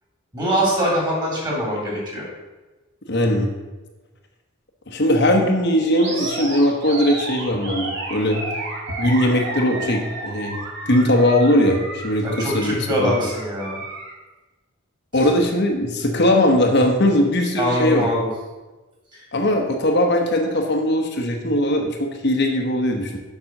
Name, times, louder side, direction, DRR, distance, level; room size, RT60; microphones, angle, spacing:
voice 1, 0.3-2.2 12.2-13.8 15.2-15.3 17.6-18.3 19.1-19.2, equal, 20° right, -3 dB, 2.8 m, -23 dB
voice 2, 3.1-3.5 4.9-8.4 8.9-10.6 10.9-13.1 15.1-18.1 19.3-23.2, left 1 dB, 55° left, 2 dB, 1.1 m, -19 dB
Animal, 6.0-14.1, right 2 dB, 55° right, 2.1 m, -32 dB
7.4 x 5.4 x 6.5 m, 1.2 s
head